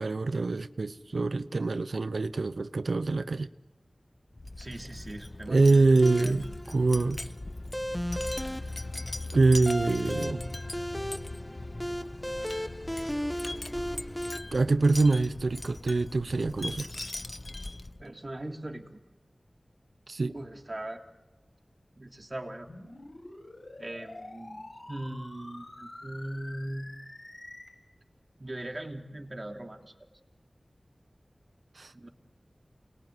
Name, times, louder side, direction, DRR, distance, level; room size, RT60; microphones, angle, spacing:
voice 1, 0.0-3.5 5.5-6.4 6.7-7.2 9.3-10.6 14.5-16.9 20.1-20.3 31.8-31.9, right 3 dB, 90° right, 0.8 m, -25 dB
Wind chime, 4.3-18.1, left 2 dB, 45° left, 1.1 m, -40 dB
voice 2, 4.6-5.8 6.2-6.5 18.0-19.0 20.3-21.0 22.0-22.7 23.8-27.0 28.4-29.9 31.9-32.1, right 1 dB, 40° right, 3.3 m, -40 dB
sound 1, 6.0-14.4, equal, 5° left, 1.5 m, -36 dB
sound 2, 22.7-27.7, left 2 dB, 60° left, 7.7 m, -46 dB
29.5 x 21.5 x 9.4 m
wide cardioid pair, 60°, 0 cm